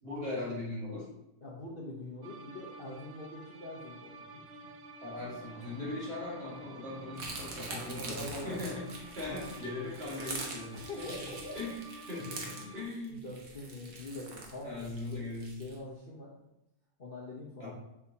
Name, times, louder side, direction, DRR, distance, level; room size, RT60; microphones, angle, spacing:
voice 1, 0.0-1.1 5.0-11.8 12.1-13.2 14.6-15.6 17.6-17.7, left 2 dB, 35° right, -7 dB, 2.4 m, -39 dB
voice 2, 1.4-4.7 7.6-8.7 10.7-11.6 12.5-12.8 13.1-14.8 15.1-15.3 15.6-16.3 17.0-17.7, left 2 dB, 40° left, -4 dB, 1.0 m, -44 dB
sound 1, 2.2-12.8, right 2 dB, 85° right, 0.5 m, -50 dB
sound 2, 5.1-10.3, right 2 dB, 25° left, 2.4 m, -54 dB
sound 3, 7.2-15.8, right 3 dB, 60° right, 1.4 m, -44 dB
6.8 x 5.8 x 2.8 m, 0.87 s
omnidirectional pair, 1.7 m